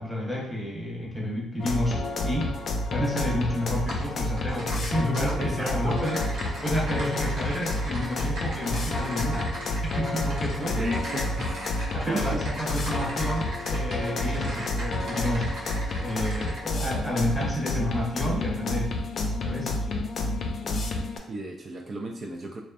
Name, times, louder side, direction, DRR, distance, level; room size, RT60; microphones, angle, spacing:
voice 1, 0.0-2.5 2.9-6.3 6.6-9.5 10.0-11.0 11.9-15.6 16.0-18.9 19.4-19.8, left 1 dB, 10° left, -3 dB, 0.7 m, -30 dB
sound 1, 1.6-21.2, left 2 dB, 55° left, 0.4 m, -30 dB
Typing, 3.9-4.0 4.4-5.3 5.8-16.6, right 1 dB, 80° right, 0.9 m, -39 dB
voice 2, 5.4-6.0 10.6-11.8 12.1-12.4 21.3-22.6, right 2 dB, 40° right, 1 dB, 0.3 m, -34 dB
2.6 x 2.1 x 2.3 m, 0.70 s
cardioid pair, 90°, 0 cm